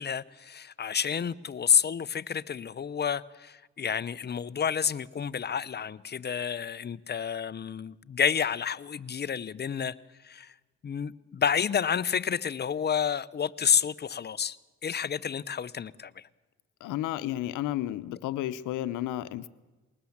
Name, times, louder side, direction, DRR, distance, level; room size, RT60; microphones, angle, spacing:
voice 1, 0.0-10.0 10.2-10.5 10.8-14.6 14.8-16.3, left 7 dB, 35° left, 0.7 m, -29 dB
voice 2, 16.8-19.5, left 13 dB, 90° left, 0.9 m, -32 dB
21.0 x 19.0 x 7.3 m
cardioid pair, 90°, 30 cm